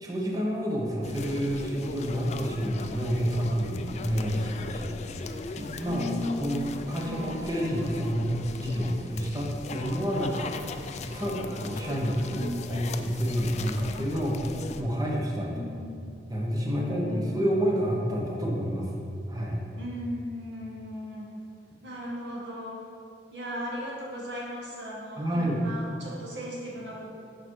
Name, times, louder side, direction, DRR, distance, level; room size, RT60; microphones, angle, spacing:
voice 1, 0.0-6.1 6.4-10.5 11.1-14.4 14.8-15.5 16.3-19.0 19.3-19.6 25.2-25.6, equal, 20° right, -2 dB, 1.0 m, -29 dB
sound 1, 1.0-14.8, left 3 dB, 40° left, 0.3 m, -39 dB
voice 2, 5.9-6.5 6.9-7.5 12.3-12.9 15.5-16.2 16.7-17.6 19.8-21.4 21.8-22.9 23.3-27.1, left 1 dB, 85° right, -4 dB, 1.7 m, -37 dB
sound 2, 6.8-8.5 9.6-13.0, right 1 dB, 50° right, 1.7 m, -50 dB
6.6 x 4.9 x 4.6 m, 2.4 s
head